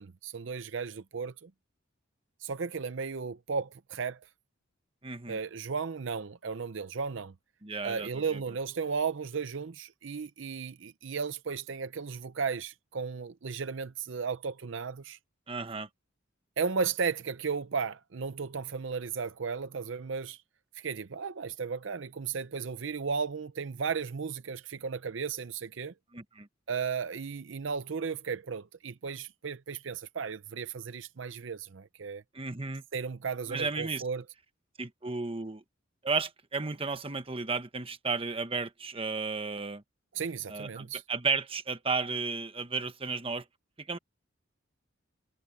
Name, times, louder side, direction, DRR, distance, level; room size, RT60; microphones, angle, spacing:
voice 1, 0.0-1.5 2.4-4.2 5.3-7.3 7.8-15.2 16.6-20.4 20.7-25.9 26.7-32.2 32.9-34.2 40.1-41.0, right 5 dB, 65° right, 0.6 m, -35 dB
voice 2, 5.0-5.4 7.6-8.4 15.5-15.9 26.1-26.5 32.3-32.8 33.5-34.0 34.8-35.6 36.0-39.8 40.5-43.4 43.9-44.0, right 4 dB, 25° right, 1.2 m, -33 dB
head